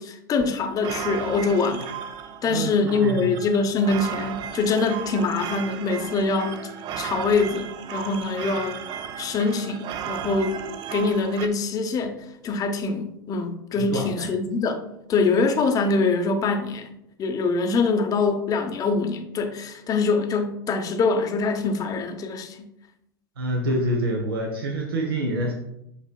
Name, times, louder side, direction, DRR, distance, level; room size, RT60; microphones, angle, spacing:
voice 1, 0.0-1.9 2.4-6.6 7.0-8.8 9.2-10.6 10.9-12.2 12.4-14.8 15.1-16.9 17.2-22.7, left 4 dB, 30° left, 6 dB, 0.7 m, -24 dB
sound 1, 0.7-11.5, right 9 dB, 35° right, 0.4 m, -35 dB
voice 2, 2.4-3.1 13.8-14.3 23.4-25.5, right 1 dB, 85° right, 0 dB, 0.8 m, -27 dB
7.3 x 2.9 x 2.2 m, 0.81 s
hypercardioid pair, 95°, 12 cm